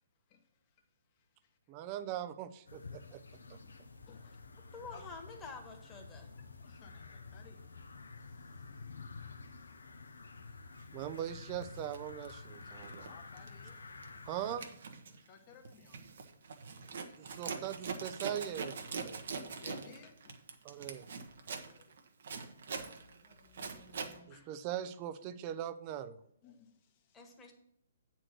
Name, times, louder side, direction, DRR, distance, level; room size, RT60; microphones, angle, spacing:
voice 1, 0.3-0.8 1.1-1.6 3.6-3.7 4.1-4.4 4.9-5.1 6.6-7.6 8.2-8.8 9.5-9.7 13.1-13.8 15.1-16.0 16.7-17.4 18.1-18.2 19.0-20.4 21.4-22.0 23.0-24.7 25.9-26.0 26.4-27.4, left 6 dB, 30° left, 1.2 m, -60 dB
voice 2, 1.7-3.2 3.5-3.6 10.9-13.1 14.2-14.6 17.2-19.2 20.6-21.1 24.3-26.2, right 11 dB, 30° right, 0.6 m, -41 dB
sound 1, 2.7-14.6, left 4 dB, 80° left, 0.9 m, -50 dB
voice 3, 4.7-6.3 27.1-27.5, left 4 dB, 15° left, 1.6 m, -48 dB
Zipper (clothing), 11.0-11.2 11.7-13.1 13.4-13.7 14.0-24.2, right 5 dB, 60° right, 1.1 m, -43 dB
8.8 x 4.4 x 6.1 m
figure-of-eight pair, 135°, 0 cm